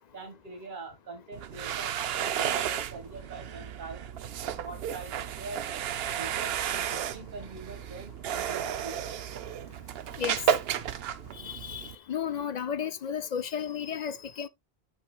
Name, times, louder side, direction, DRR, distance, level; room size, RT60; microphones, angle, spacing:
voice 1, 0.1-4.1 4.6-5.7 6.2-9.1 11.3-11.4, right 3 dB, 50° right, 1.9 m, -43 dB
sound 1, 1.3-11.9, right 9 dB, 70° right, 0.8 m, -33 dB
voice 2, 11.3-14.5, left 8 dB, 55° left, 0.5 m, -33 dB
8.9 x 5.9 x 2.2 m
omnidirectional pair, 1.1 m